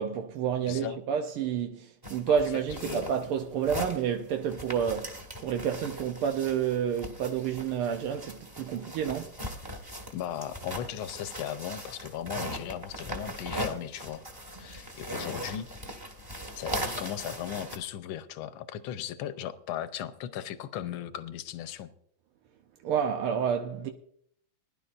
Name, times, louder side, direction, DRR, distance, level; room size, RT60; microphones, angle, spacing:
voice 1, 0.0-9.3 22.8-23.9, right 8 dB, 85° right, 1.7 m, -29 dB
voice 2, 0.7-1.0 2.3-2.4 2.8-3.2 10.1-14.3 14.6-15.7 16.6-21.9, left 10 dB, 75° left, 1.6 m, -37 dB
sound 1, 2.0-17.8, equal, 10° right, 1.4 m, -39 dB
21.0 x 11.0 x 2.6 m
omnidirectional pair, 2.3 m